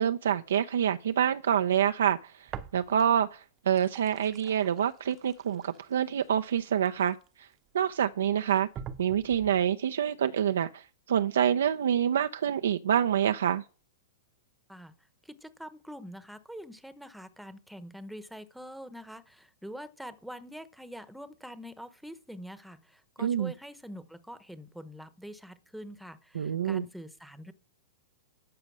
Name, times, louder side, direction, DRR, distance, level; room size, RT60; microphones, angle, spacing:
voice 1, 0.0-7.5 7.7-8.7 9.0-13.6 23.2-23.5 26.4-26.8, right 9 dB, 80° right, 0.5 m, -27 dB
sound 1, 2.5-3.3 3.6-7.5 8.1-8.2 8.7-9.6, right 8 dB, 30° right, 0.7 m, -45 dB
voice 2, 14.7-27.5, equal, ahead, 0.9 m, -45 dB
12.5 x 5.2 x 6.1 m
hypercardioid pair, 135°, 0 cm